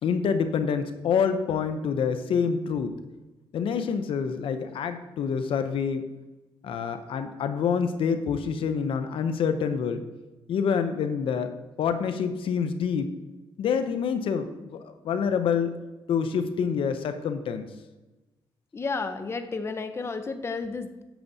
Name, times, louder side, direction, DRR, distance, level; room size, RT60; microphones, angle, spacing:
voice 1, 0.0-2.9 3.5-6.0 6.6-10.0 10.5-13.1 13.6-15.7 16.1-17.7, left 6 dB, 75° left, 9 dB, 0.6 m, -27 dB
voice 2, 18.7-21.0, left 4 dB, 30° left, 8 dB, 0.6 m, -32 dB
8.8 x 7.1 x 2.7 m, 1.1 s
cardioid pair, 100°, 9 cm